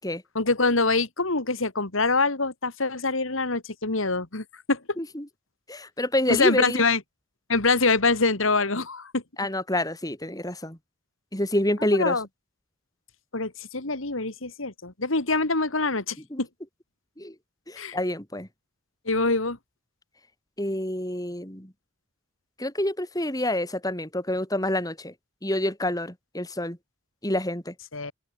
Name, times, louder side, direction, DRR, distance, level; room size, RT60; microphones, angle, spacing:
voice 1, 0.3-4.8 6.3-7.0 7.5-9.2 12.0-12.2 13.3-16.5 17.8-18.0 19.1-19.6 27.9-28.1, left 3 dB, 80° left, 2.8 m, -24 dB
voice 2, 5.0-5.3 5.7-6.8 9.4-10.8 11.3-12.2 16.3-16.4 17.2-17.3 17.7-18.5 20.6-21.7 22.6-25.1 25.4-26.8 27.2-27.7, left 1 dB, 20° left, 6.1 m, -27 dB
open air
head